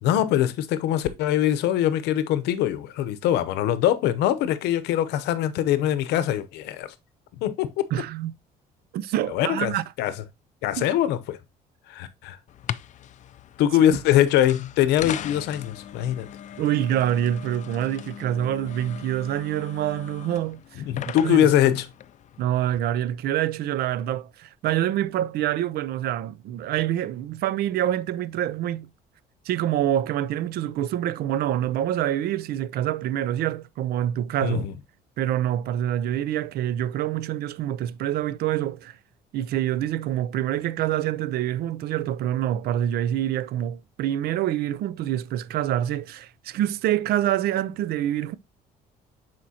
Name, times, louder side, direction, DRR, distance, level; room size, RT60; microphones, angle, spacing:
voice 1, 0.0-6.9 7.3-7.7 9.3-10.1 10.6-11.4 11.9-12.4 13.6-16.3 20.8-21.9 34.4-34.7, left 11 dB, 85° left, 0.7 m, -23 dB
voice 2, 7.9-8.3 8.9-9.8 10.8-10.9 16.6-21.5 22.4-28.9 29.5-34.7 35.2-39.0 39.3-48.4, right 12 dB, 70° right, 0.5 m, -26 dB
sound 1, 12.5-22.8, left 10 dB, 45° left, 0.4 m, -39 dB
8.6 x 4.4 x 2.8 m
cardioid pair, 110°, 17 cm